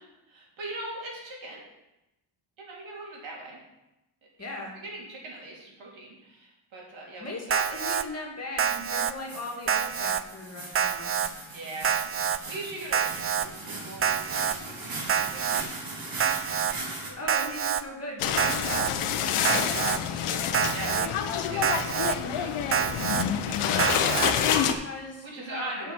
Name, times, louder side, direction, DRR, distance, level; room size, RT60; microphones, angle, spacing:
voice 1, 0.0-1.7 2.6-3.6 4.4-7.6 11.5-16.6 17.1-17.5 20.7-20.9 21.5-23.1 23.4-23.7 24.0-24.6 25.2-25.9, right 2 dB, 70° right, -3 dB, 3.6 m, -42 dB
voice 2, 4.4-4.8 7.2-11.3 17.1-21.1 23.6-25.9, left 2 dB, 30° left, 0 dB, 2.3 m, -38 dB
Alarm, 7.5-8.0 8.6-9.1 9.7-10.2 10.7-11.3 11.8-12.4 12.9-13.5 14.0-14.5 15.1-15.6 16.2-16.7 17.3-17.8 18.4-18.9 19.4-20.0 20.5-21.1 21.6-22.1 22.7-23.2 23.8-24.3, right 8 dB, 30° right, 0.4 m, -27 dB
sound 1, 9.2-17.1, right 2 dB, 45° right, 2.5 m, -39 dB
sound 2, 18.2-24.7, left 8 dB, 85° left, 0.9 m, -27 dB
8.5 x 6.1 x 6.1 m, 0.94 s
cardioid pair, 100°, 49 cm